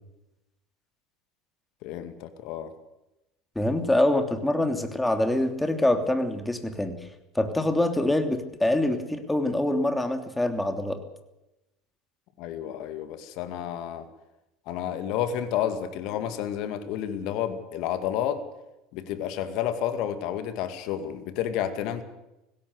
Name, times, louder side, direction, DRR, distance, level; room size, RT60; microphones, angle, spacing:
voice 1, 1.8-2.7 12.4-14.1 14.7-18.4 18.9-22.0, left 10 dB, 60° left, 9 dB, 2.2 m, -30 dB
voice 2, 3.5-7.0 7.3-11.0, left 1 dB, 10° left, 6 dB, 3.1 m, -25 dB
19.0 x 17.0 x 8.1 m, 0.92 s
hypercardioid pair, 75°, 0 cm